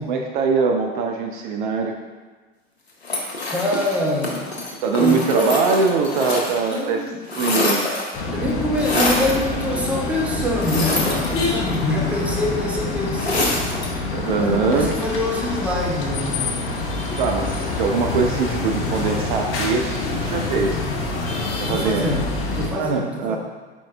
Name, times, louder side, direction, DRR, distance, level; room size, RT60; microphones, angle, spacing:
voice 1, 0.0-1.9 4.8-7.0 7.4-7.9 14.1-14.9 17.2-20.8 21.6-22.1 22.7-23.4, right 4 dB, 55° right, 3 dB, 0.4 m, -22 dB
sound 1, 3.0-6.8 7.1-8.2 8.8-9.4 10.6-11.8 13.2-14.0, left 2 dB, 85° left, 0.7 m, -25 dB
voice 2, 3.5-4.4 5.0-5.6 6.3-7.2 8.3-13.6 14.4-16.7 21.7-23.4, left 1 dB, 5° right, -2 dB, 0.7 m, -25 dB
sound 2, 8.1-22.7, left 3 dB, 40° left, 0.7 m, -26 dB
4.3 x 4.3 x 2.3 m, 1.3 s
figure-of-eight pair, 75°, 31 cm